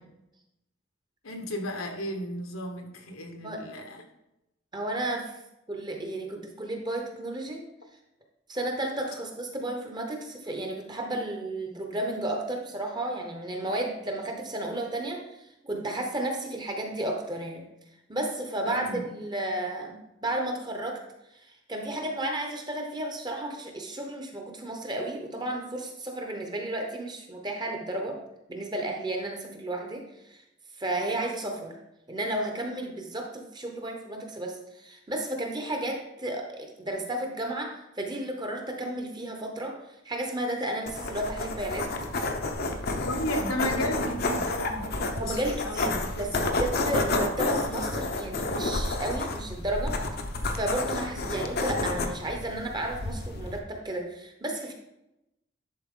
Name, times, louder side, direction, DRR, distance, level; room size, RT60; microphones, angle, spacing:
voice 1, 1.2-4.0 18.6-19.0 43.1-46.5, equal, 80° left, 3 dB, 1.2 m, -34 dB
voice 2, 4.7-5.3 5.7-7.6 8.5-17.6 18.1-21.0 21.7-28.2 28.5-30.0 30.3-30.4 30.8-31.7 32.1-39.8 40.0-41.9 45.1-45.9 46.2-50.0 50.5-54.7, right 1 dB, 20° right, 2 dB, 0.9 m, -33 dB
sound 1, 40.9-53.6, left 2 dB, 50° left, 0.7 m, -30 dB
10.5 x 4.2 x 3.7 m, 0.90 s
head